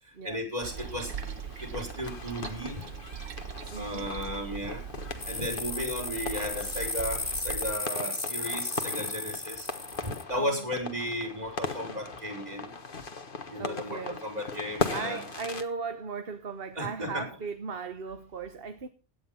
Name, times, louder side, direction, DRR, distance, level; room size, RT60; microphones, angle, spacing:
voice 1, 0.2-1.1 1.6-2.8 3.7-4.8 5.3-9.7 10.0-12.7 13.5-15.2 16.8-17.3, equal, 35° right, 5.8 m, -35 dB
sound 1, 0.6-15.6, left 4 dB, 45° left, 1.6 m, -39 dB
Toilet flush, 0.6-7.8, right 8 dB, 85° right, 1.3 m, -41 dB
voice 2, 3.7-4.1 10.4-10.7 13.6-14.2 14.9-18.9, right 5 dB, 50° right, 1.3 m, -37 dB
sound 2, 5.2-10.2, left 2 dB, 15° left, 0.6 m, -35 dB
17.5 x 9.7 x 5.6 m
omnidirectional pair, 1.3 m